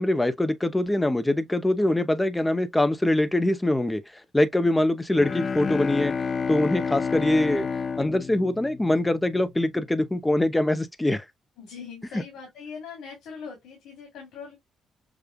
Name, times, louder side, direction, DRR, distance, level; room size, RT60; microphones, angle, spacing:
voice 1, 0.0-4.0 4.3-6.1 6.5-7.7 8.0-11.2, left 1 dB, 10° left, 0.7 m, -23 dB
Bowed string instrument, 5.1-9.4, left 5 dB, 40° left, 0.4 m, -29 dB
voice 2, 11.6-14.6, left 6 dB, 90° left, 2.5 m, -41 dB
6.8 x 2.3 x 2.2 m
cardioid pair, 90°, 0 cm